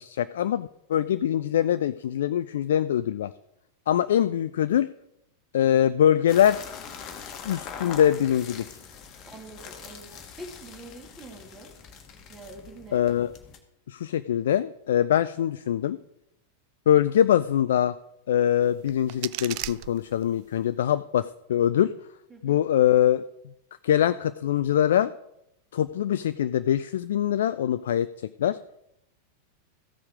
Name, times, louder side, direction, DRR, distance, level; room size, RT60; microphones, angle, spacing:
voice 1, 0.0-3.3 3.9-4.9 5.5-6.6 7.4-8.7 12.9-13.3 13.9-16.0 16.9-17.9 18.3-21.9 22.4-23.2 23.8-25.1 25.7-28.6, left 10 dB, 60° left, 13 dB, 0.3 m, -23 dB
sound 1, 6.3-13.6, left 7 dB, 35° left, 1.5 m, -43 dB
voice 2, 9.2-11.7 12.3-13.1 22.3-22.6, right 2 dB, 15° right, 1 dB, 2.8 m, -45 dB
sound 2, 18.6-20.6, right 20 dB, 45° right, 0.3 m, -38 dB
14.5 x 7.0 x 5.0 m, 0.81 s
figure-of-eight pair, 90°, 0 cm